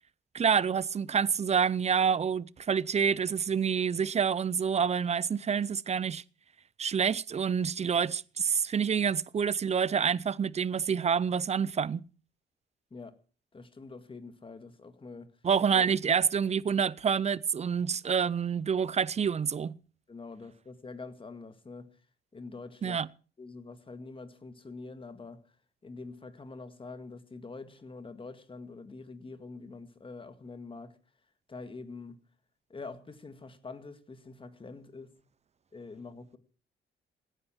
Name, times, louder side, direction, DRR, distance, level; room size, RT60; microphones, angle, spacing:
voice 1, 0.3-6.2 6.8-12.0 15.4-19.8 22.8-23.1, right 7 dB, 35° right, 0.6 m, -27 dB
voice 2, 13.5-15.3 20.1-21.9 22.3-23.0 23.4-25.4 25.8-31.0 31.5-32.2 32.7-35.1 35.7-36.4, left 3 dB, 25° left, 1.9 m, -45 dB
17.0 x 10.0 x 6.0 m
cardioid pair, 90°, 20 cm